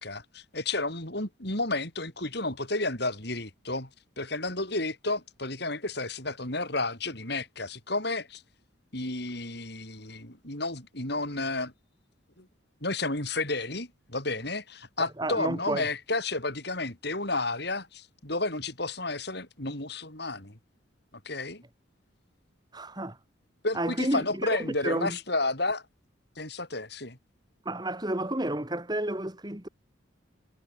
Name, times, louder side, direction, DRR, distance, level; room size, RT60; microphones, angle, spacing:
voice 1, 0.0-3.9 4.2-8.4 8.9-11.7 12.4-12.5 12.8-20.6 21.3-21.6 23.6-25.8 26.4-27.2, left 2 dB, 55° left, 7.3 m, -32 dB
voice 2, 15.2-15.9 22.7-23.2 23.7-25.2 27.7-29.7, right 1 dB, 20° right, 2.2 m, -31 dB
head